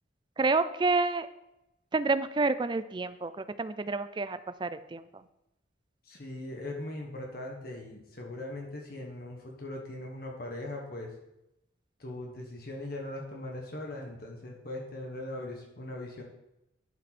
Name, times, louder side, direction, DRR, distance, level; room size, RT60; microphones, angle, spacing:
voice 1, 0.4-1.3 1.9-5.0, right 3 dB, 25° right, 13 dB, 0.3 m, -29 dB
voice 2, 6.0-11.1 12.0-16.2, left 1 dB, 50° left, 0 dB, 1.3 m, -40 dB
11.0 x 5.4 x 4.3 m, 0.86 s
head